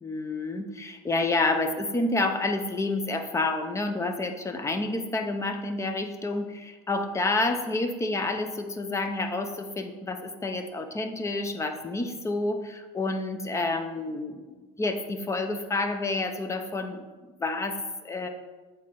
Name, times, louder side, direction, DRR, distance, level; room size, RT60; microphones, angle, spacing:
voice 1, 0.0-17.1 17.4-17.8 18.0-18.3, left 2 dB, 15° left, 6 dB, 0.6 m, -29 dB
7.5 x 4.2 x 3.8 m, 1.3 s
supercardioid pair, 130°, 20 cm